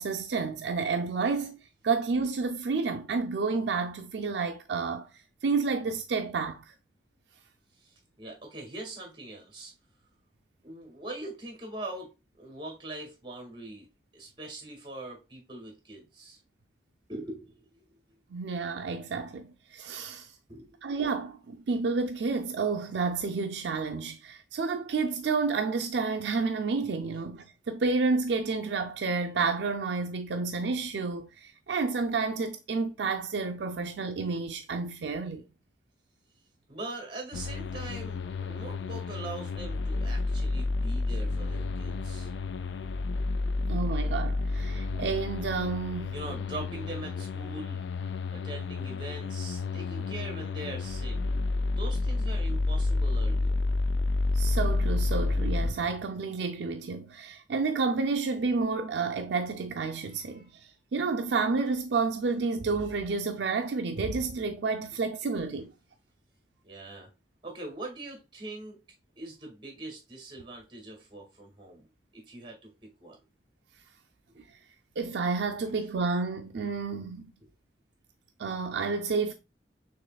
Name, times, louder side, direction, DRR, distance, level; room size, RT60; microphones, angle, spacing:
voice 1, 0.0-1.6 1.8-5.1 5.4-6.7 18.3-20.3 20.8-35.4 43.7-46.1 54.3-60.5 60.9-65.7 75.0-77.3 78.4-79.3, right 4 dB, 70° right, 0.4 m, -30 dB
voice 2, 7.8-9.7 10.6-13.9 14.1-16.4 17.1-17.8 20.5-20.8 36.7-42.3 46.1-47.8 48.3-51.2 51.8-53.6 60.0-60.5 66.6-67.1 67.4-68.8 69.2-71.9 72.1-73.2 74.3-74.4, right 2 dB, 25° right, 1.8 m, -42 dB
sound 1, 37.3-55.7, left 3 dB, 80° left, 0.4 m, -30 dB
6.5 x 3.0 x 2.3 m
head